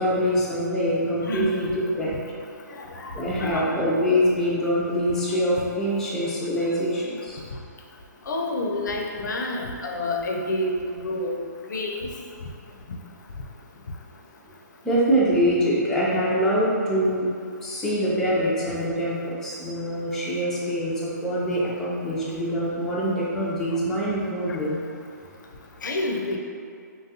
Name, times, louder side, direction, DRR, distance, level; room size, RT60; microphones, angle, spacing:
voice 1, 0.0-2.1 3.1-7.4 14.8-17.3 17.6-24.8, equal, 5° left, -7 dB, 0.3 m, -24 dB
voice 2, 2.9-3.7 8.3-11.4 11.7-12.1 24.5-24.6 25.8-26.4, left 1 dB, 80° left, 1 dB, 0.4 m, -28 dB
3.0 x 2.3 x 2.7 m, 2.3 s
hypercardioid pair, 145°, 10 cm